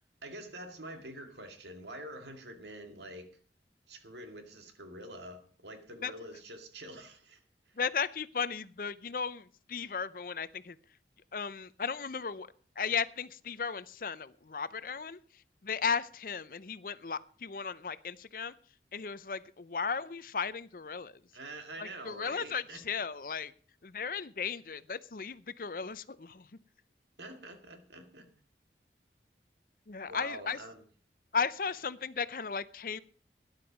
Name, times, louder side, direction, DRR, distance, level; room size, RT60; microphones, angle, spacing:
voice 1, 0.2-3.3 3.9-7.4 21.3-22.8 27.2-28.3 30.1-30.8, right 1 dB, 75° right, 6 dB, 2.2 m, -46 dB
voice 2, 7.8-10.8 11.3-12.5 12.8-18.5 18.9-21.2 21.8-23.5 23.8-26.5 29.9-30.6 31.3-33.0, left 6 dB, 50° left, 16 dB, 0.6 m, -35 dB
13.5 x 10.5 x 5.1 m, 0.42 s
head